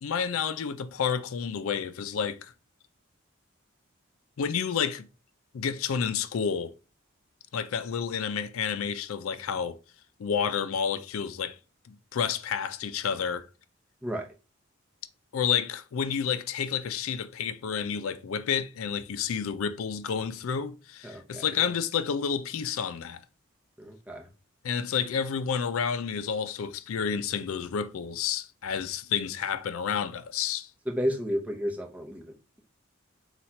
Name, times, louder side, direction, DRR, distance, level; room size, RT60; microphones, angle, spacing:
voice 1, 0.0-2.5 4.4-5.1 5.5-6.7 7.5-9.8 10.2-11.6 11.9-13.5 15.3-23.2 24.6-30.7, left 7 dB, 85° left, 0.4 m, -30 dB
voice 2, 21.0-21.5 23.8-24.3 30.9-32.6, equal, 5° right, 0.7 m, -32 dB
4.2 x 2.3 x 4.3 m
head